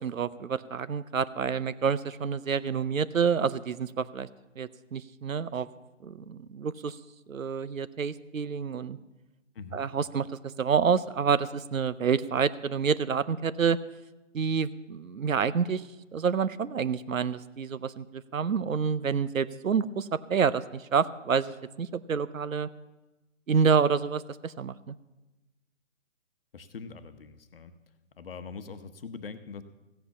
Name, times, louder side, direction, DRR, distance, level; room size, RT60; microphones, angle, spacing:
voice 1, 0.0-4.3 4.6-5.7 6.0-7.0 7.3-9.0 9.7-10.3 10.6-13.8 14.3-15.8 16.1-22.7 23.5-24.9, right 6 dB, 85° right, 15 dB, 0.9 m, -28 dB
voice 2, 9.5-9.9 26.5-27.7 28.2-29.6, left 5 dB, 45° left, 10 dB, 1.0 m, -42 dB
15.5 x 7.9 x 7.1 m, 1.0 s
hypercardioid pair, 155°, 39 cm